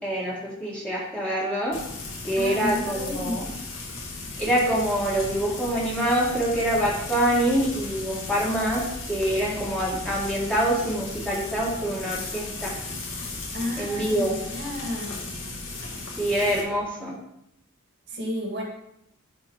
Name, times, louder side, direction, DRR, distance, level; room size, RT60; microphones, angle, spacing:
voice 1, 0.0-1.8 2.2-3.5 4.4-12.7 13.8-14.4 16.2-17.1, right 1 dB, 5° left, -6 dB, 1.9 m, -25 dB
Frying (food), 1.7-16.6, left 2 dB, 65° left, 2.0 m, -36 dB
voice 2, 2.4-3.5 13.5-15.2 18.1-18.6, equal, 50° right, -1 dB, 2.0 m, -32 dB
10.5 x 4.3 x 4.7 m, 0.80 s
head